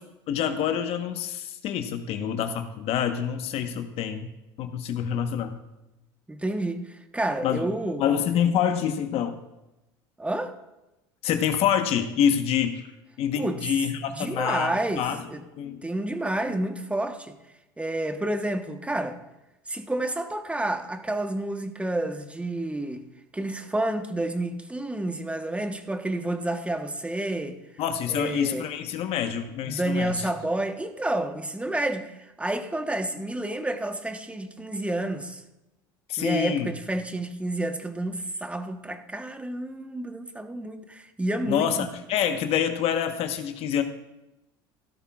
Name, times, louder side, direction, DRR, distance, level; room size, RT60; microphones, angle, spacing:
voice 1, 0.3-4.3 4.6-5.6 7.4-7.6 8.0-9.4 11.2-12.9 13.2-15.2 15.6-15.9 27.8-30.3 36.1-36.7 41.5-43.8, left 8 dB, 55° left, 1.1 m, -26 dB
voice 2, 6.3-8.1 10.2-10.5 13.3-13.8 14.1-15.4 15.8-17.4 17.8-19.2 19.7-23.0 23.3-27.6 28.1-28.7 29.6-35.4 36.2-41.9, right 1 dB, 10° right, 1.1 m, -30 dB
16.0 x 12.5 x 2.4 m
hypercardioid pair, 80°, 12 cm